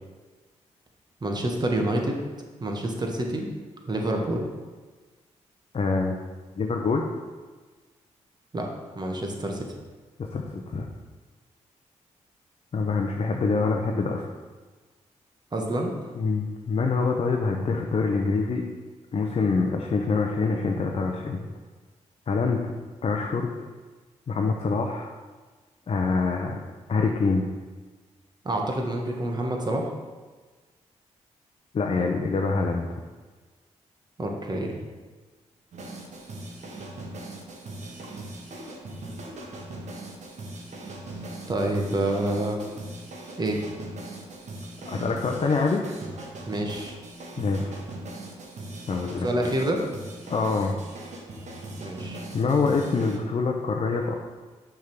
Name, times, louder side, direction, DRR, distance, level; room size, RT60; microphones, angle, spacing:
voice 1, 1.2-2.2 2.6-3.5 3.9-4.4 8.5-8.7 8.9-9.6 15.5-16.1 28.4-29.9 34.2-34.8 41.5-42.6 43.4-43.6 46.5-46.9 49.2-49.8 51.8-52.2, right 1 dB, 35° right, 1 dB, 1.4 m, -27 dB
voice 2, 5.7-6.1 6.6-7.0 10.2-10.9 12.7-14.2 16.1-18.6 19.1-21.4 22.3-22.7 23.0-23.5 24.3-25.1 25.9-26.6 26.9-27.5 31.7-33.0 44.8-45.8 47.4-47.8 48.9-49.3 50.3-50.8 52.3-54.1, left 4 dB, 50° left, 1 dB, 0.7 m, -25 dB
sound 1, 35.7-53.2, right 2 dB, 65° right, 1.3 m, -40 dB
6.3 x 3.7 x 6.0 m, 1.4 s
supercardioid pair, 55°, 13 cm